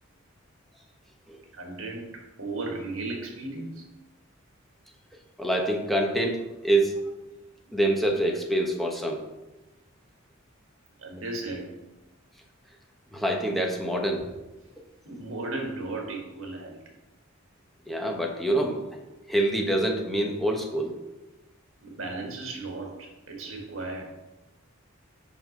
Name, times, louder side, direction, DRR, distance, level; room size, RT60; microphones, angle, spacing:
voice 1, 1.5-3.9 11.0-11.8 15.0-16.8 21.8-24.1, right 2 dB, 70° right, 1 dB, 1.7 m, -35 dB
voice 2, 5.4-7.0 7.7-9.2 13.1-14.3 17.9-18.8 19.3-20.9, right 1 dB, ahead, 0 dB, 1.0 m, -26 dB
5.9 x 5.5 x 5.1 m, 1.0 s
head